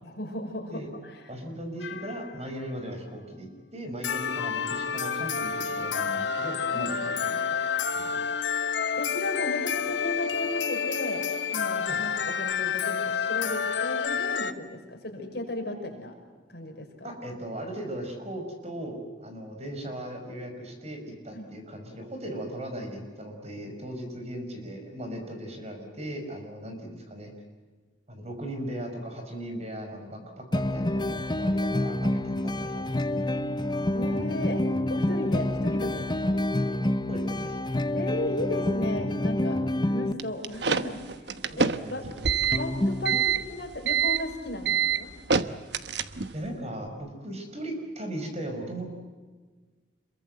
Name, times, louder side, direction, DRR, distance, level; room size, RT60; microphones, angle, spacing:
voice 1, 0.0-1.3 6.7-7.0 9.0-11.2 11.5-16.1 16.5-17.1 21.3-21.5 33.9-36.4 37.9-42.0 42.6-45.1, left 1 dB, 60° left, 3 dB, 5.7 m, -35 dB
voice 2, 1.3-7.6 7.9-8.2 11.9-12.0 17.0-27.3 28.1-33.0 37.1-37.6 41.5-42.0 42.4-42.6 46.3-48.9, right 1 dB, 35° right, 4 dB, 5.7 m, -38 dB
sound 1, 1.8-2.4 4.0-14.5, left 6 dB, 80° left, 1.2 m, -29 dB
sound 2, 30.5-40.1 42.5-43.2, left 1 dB, 25° left, 0.9 m, -27 dB
sound 3, 40.2-46.5, right 6 dB, 70° right, 1.1 m, -26 dB
27.0 x 23.0 x 8.0 m, 1.4 s
head